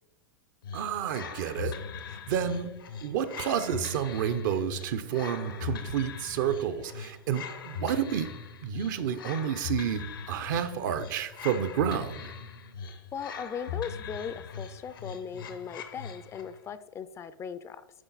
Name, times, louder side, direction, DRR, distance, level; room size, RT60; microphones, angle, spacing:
sound 1, 0.6-16.6, left 6 dB, 75° left, 0.9 m, -40 dB
voice 1, 0.7-1.7 2.1-2.7 3.0-8.3 8.6-12.2, right 8 dB, 60° right, 11 dB, 0.7 m, -30 dB
voice 2, 13.1-17.8, left 7 dB, 25° left, 14 dB, 0.4 m, -38 dB
9.9 x 4.0 x 4.0 m, 1.0 s
hypercardioid pair, 100°, 12 cm